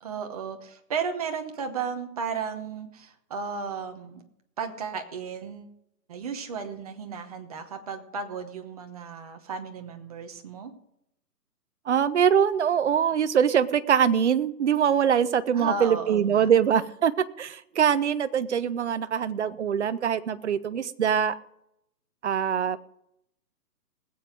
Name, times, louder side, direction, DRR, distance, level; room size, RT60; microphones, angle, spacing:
voice 1, 0.0-4.2 4.6-5.7 6.1-10.7 15.5-16.5, right 5 dB, 25° right, 5 dB, 1.0 m, -34 dB
voice 2, 11.9-17.1 17.4-21.3 22.2-22.8, right 8 dB, 45° right, 13 dB, 0.7 m, -23 dB
19.5 x 7.9 x 5.1 m, 0.78 s
hypercardioid pair, 165°, 49 cm